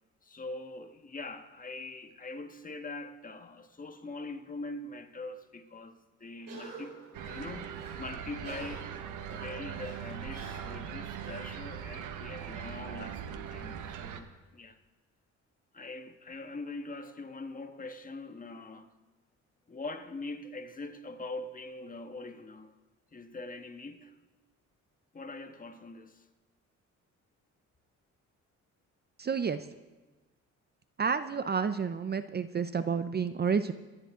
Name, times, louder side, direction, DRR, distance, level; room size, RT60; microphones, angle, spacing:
voice 1, 0.2-8.9 9.3-14.8 15.7-18.9 19.7-22.7 23.1-24.1 25.1-26.2, left 2 dB, 25° left, 1.5 m, -43 dB
Cough, 6.4-12.2, right 4 dB, 60° right, 4.2 m, -49 dB
sound 1, 7.1-14.2, right 8 dB, 85° right, 1.3 m, -41 dB
voice 2, 29.2-29.6 31.0-33.7, right 6 dB, 35° right, 0.7 m, -30 dB
25.0 x 11.0 x 3.8 m
cardioid pair, 90°, 30 cm